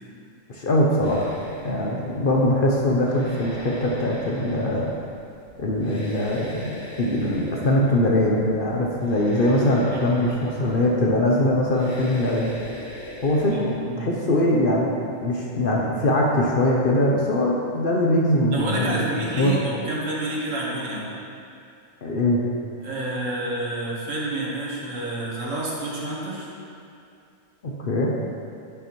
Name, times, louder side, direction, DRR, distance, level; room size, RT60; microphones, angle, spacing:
voice 1, 0.5-1.3 1.6-4.9 5.6-6.7 7.0-12.5 13.2-14.9 15.2-19.1 19.4-19.5 22.0-22.4 27.8-28.1, left 1 dB, 50° left, -3 dB, 0.8 m, -22 dB
sound 1, 1.0-13.7, equal, 85° left, 2.6 m, -41 dB
voice 2, 9.9-10.5 13.5-14.2 18.5-21.1 22.8-26.5, right 2 dB, 70° right, -5 dB, 1.7 m, -29 dB
11.0 x 5.6 x 3.0 m, 2.5 s
omnidirectional pair, 1.3 m